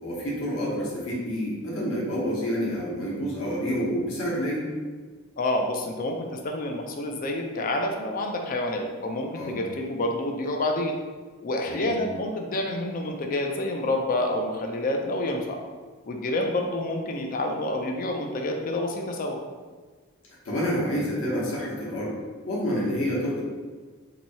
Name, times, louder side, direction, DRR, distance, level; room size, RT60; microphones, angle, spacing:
voice 1, 0.0-4.6 9.4-9.6 11.7-11.9 20.4-22.2 22.5-23.4, equal, 65° left, -6 dB, 1.0 m, -28 dB
voice 2, 5.4-11.0 11.4-15.6 16.1-19.4, left 1 dB, 40° left, 2 dB, 0.4 m, -28 dB
2.9 x 2.7 x 4.1 m, 1.4 s
head